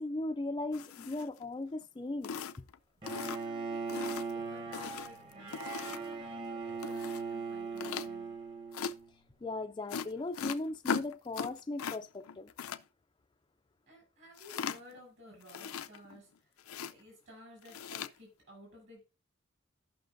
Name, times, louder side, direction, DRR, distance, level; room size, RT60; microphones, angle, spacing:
voice 1, 0.0-2.3 9.4-12.5, left 2 dB, 20° left, 0.4 m, -37 dB
sound 1, 0.7-1.4 1.8-1.9 2.2-2.7 3.1-3.6 3.9-4.3 4.7-6.2 6.8-7.2 7.8-8.1 8.7-8.9 9.9-12.0 12.2-12.8 14.4-15.0 15.4-16.2 16.6-16.9 17.6-18.1, left 6 dB, 90° left, 0.5 m, -39 dB
Bowed string instrument, 3.0-9.1, right 4 dB, 25° right, 1.0 m, -39 dB
voice 2, 3.1-8.3 13.9-16.5 16.9-19.0, equal, 60° right, 6.4 m, -55 dB
16.0 x 5.9 x 2.6 m
head